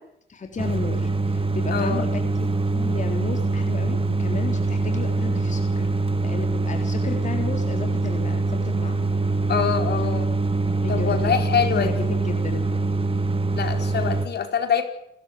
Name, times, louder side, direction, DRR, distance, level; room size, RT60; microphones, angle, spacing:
voice 1, 0.3-5.9 6.2-9.1 10.8-12.7, left 4 dB, 40° left, 4 dB, 3.8 m, -34 dB
sound 1, 0.6-14.3, right 3 dB, 25° right, 1.8 m, -24 dB
voice 2, 1.7-2.1 9.5-10.3 10.9-12.1 13.6-14.8, left 7 dB, 55° left, 6 dB, 4.6 m, -25 dB
29.0 x 14.0 x 9.4 m, 0.78 s
cardioid pair, 90°, 20 cm